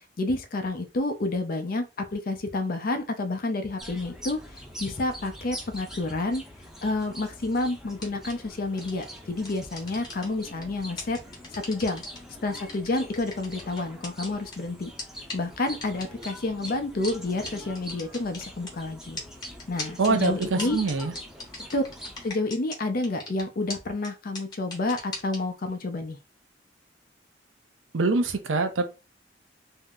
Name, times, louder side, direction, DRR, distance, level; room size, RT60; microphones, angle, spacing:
voice 1, 0.2-6.4 6.8-11.2 11.5-12.0 12.4-14.9 15.3-19.2 19.7-20.8 21.7-21.8 22.2-26.2, left 2 dB, 50° left, 0.5 m, -29 dB
sound 1, 3.8-22.3, equal, 5° right, 0.6 m, -44 dB
sound 2, 8.0-8.3 8.8-9.0 9.4-10.6 11.0-12.2 12.6-14.6 15.0-15.1 15.3-15.4 15.8-16.3 16.6-16.7 17.0-17.1 17.5-17.6 17.8-18.7 19.2-22.8 23.0-23.4 23.7-23.8 24.0-24.1 24.4-25.4, left 3 dB, 20° left, 1.0 m, -37 dB
voice 2, 20.0-21.1 27.9-28.9, right 3 dB, 85° right, 0.5 m, -24 dB
2.6 x 2.0 x 3.5 m
head